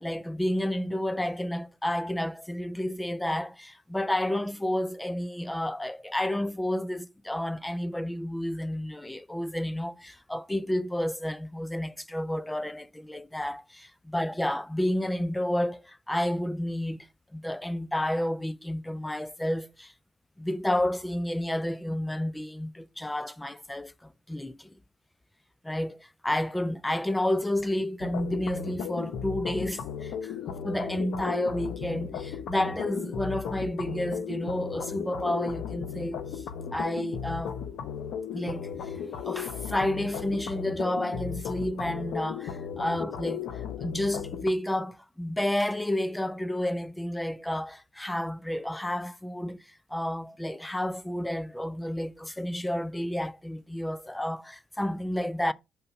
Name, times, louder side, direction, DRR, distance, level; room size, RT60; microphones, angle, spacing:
voice 1, 0.0-17.1 17.3-19.9 20.4-24.7 25.6-36.4 36.7-37.6 38.3-39.0 39.2-55.5, left 1 dB, 10° left, 0.5 m, -31 dB
sound 1, 28.0-44.5, left 8 dB, 80° left, 0.8 m, -36 dB
5.7 x 3.8 x 5.7 m
cardioid pair, 90°, 0 cm